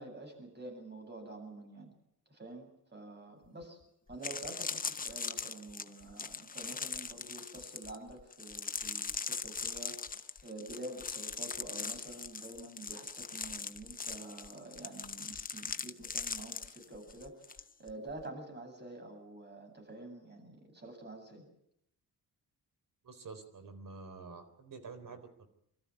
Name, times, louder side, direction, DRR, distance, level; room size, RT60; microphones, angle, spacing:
voice 1, 0.0-1.9 2.3-3.8 4.1-21.5, right 2 dB, 25° right, 4 dB, 7.8 m, -48 dB
sound 1, 3.6-3.7 4.1-17.6 17.9-18.2, left 5 dB, 20° left, 0.8 m, -40 dB
voice 2, 23.0-25.5, right 4 dB, 55° right, 9 dB, 4.0 m, -48 dB
25.0 x 14.0 x 9.9 m, 0.78 s
cardioid pair, 110°, 38 cm